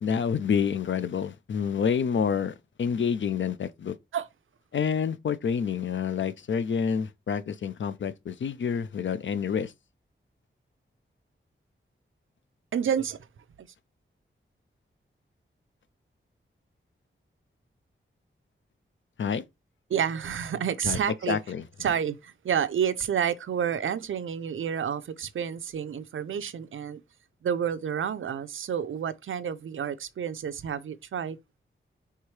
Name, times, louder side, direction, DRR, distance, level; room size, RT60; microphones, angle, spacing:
voice 1, 0.0-3.9 4.7-9.7 19.2-19.4 20.8-21.0 21.3-21.6, left 7 dB, 65° left, 0.5 m, -28 dB
voice 2, 12.7-13.3 19.9-21.4 21.8-27.0 27.4-31.4, right 8 dB, 75° right, 0.5 m, -29 dB
4.6 x 3.5 x 3.2 m
wide cardioid pair, 120°, 21 cm